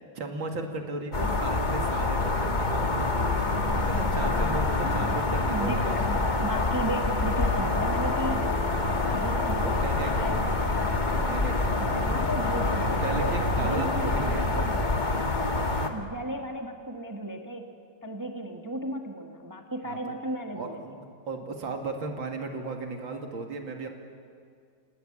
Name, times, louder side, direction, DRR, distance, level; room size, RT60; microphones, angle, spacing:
voice 1, 0.1-3.3 3.7-6.3 9.6-10.3 11.1-12.3 12.8-14.7 19.8-20.2 20.5-23.9, right 3 dB, 80° right, 3 dB, 3.1 m, -36 dB
sound 1, 1.1-15.9, left 2 dB, 25° left, 1.6 m, -26 dB
voice 2, 5.5-6.2 6.4-10.7 11.8-14.2 14.5-15.0 15.9-17.7 18.0-20.8, right 1 dB, 10° right, 4 dB, 1.3 m, -35 dB
28.5 x 18.0 x 8.7 m, 2.3 s
omnidirectional pair, 2.1 m